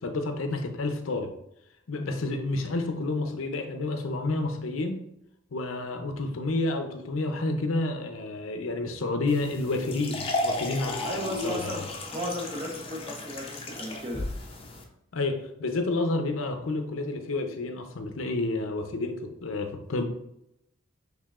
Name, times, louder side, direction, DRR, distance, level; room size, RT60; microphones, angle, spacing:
voice 1, 0.0-1.3 1.9-5.0 5.5-11.8 15.1-20.0, left 2 dB, 90° left, 6 dB, 0.6 m, -30 dB
sound 1, 9.3-14.8, left 2 dB, 30° left, 0.6 m, -34 dB
voice 2, 11.0-14.3, equal, 25° right, -1 dB, 0.9 m, -35 dB
6.4 x 3.3 x 2.4 m, 0.81 s
head